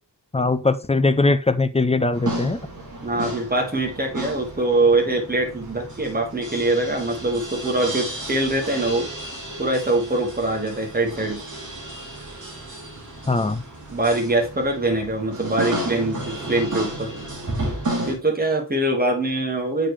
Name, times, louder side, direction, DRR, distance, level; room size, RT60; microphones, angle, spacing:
voice 1, 0.3-2.6 13.3-13.6, left 3 dB, 15° left, 0.4 m, -20 dB
sound 1, 2.1-18.1, right 1 dB, 45° right, 2.4 m, -32 dB
voice 2, 3.0-9.1 9.6-11.4 13.9-17.1 18.1-19.9, right 2 dB, 20° right, 1.7 m, -23 dB
7.2 x 5.2 x 3.2 m
wide cardioid pair, 155°, 42 cm